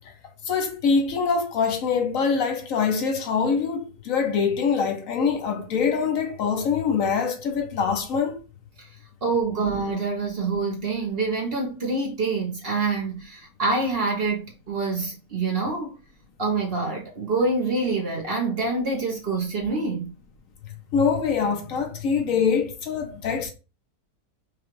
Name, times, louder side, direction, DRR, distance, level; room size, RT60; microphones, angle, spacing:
voice 1, 0.5-8.4 20.9-23.5, left 5 dB, 60° left, 1.1 m, -24 dB
voice 2, 9.2-16.0 16.4-20.1, right 3 dB, 45° right, 0.8 m, -26 dB
4.9 x 2.4 x 3.1 m
omnidirectional pair, 1.8 m